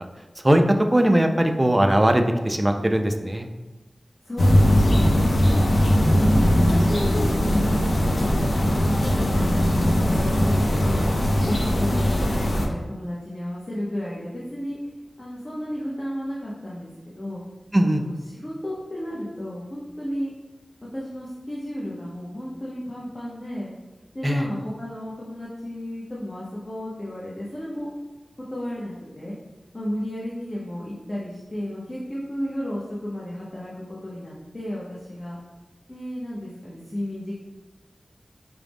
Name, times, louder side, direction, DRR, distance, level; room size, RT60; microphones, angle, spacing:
voice 1, 0.4-3.5 17.7-18.0 24.2-24.5, right 1 dB, 20° right, 6 dB, 0.3 m, -20 dB
voice 2, 4.2-5.4 5.8-7.8 8.2-14.8 15.2-17.4 17.8-20.3 20.9-23.7 24.1-27.9 28.5-29.4 29.7-35.4 35.9-37.4, equal, 35° left, -6 dB, 0.7 m, -33 dB
sound 1, 4.4-12.7, equal, 90° left, 0.5 m, -20 dB
4.6 x 2.0 x 3.4 m, 1.2 s
wide cardioid pair, 90°, 0 cm